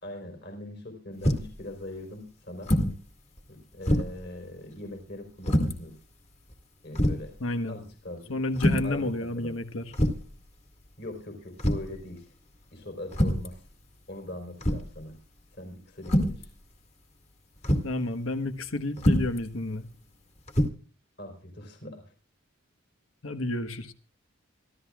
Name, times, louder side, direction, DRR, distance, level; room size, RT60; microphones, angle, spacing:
voice 1, 0.0-2.7 3.5-5.9 6.8-7.3 7.7-8.3 8.8-9.5 11.0-12.2 12.7-13.6 14.1-15.2 15.6-16.5 21.2-22.0, left 1 dB, 55° left, 3 dB, 4.3 m, -41 dB
sound 1, 1.2-1.6 2.6-3.0 3.4-3.5 3.8-4.2 5.4-5.8 6.5-6.6 6.9-7.3 8.5-9.0 9.9-10.3 11.6-11.9 13.1-13.5 14.6-15.0 16.0-16.4 17.6-17.9 19.0-19.4 20.5-20.7, equal, 30° left, 2.0 m, -25 dB
voice 2, 7.4-7.8 8.3-9.8 17.8-19.9 23.2-23.9, left 2 dB, 85° left, 9 dB, 1.3 m, -30 dB
25.5 x 13.5 x 2.4 m, 0.39 s
head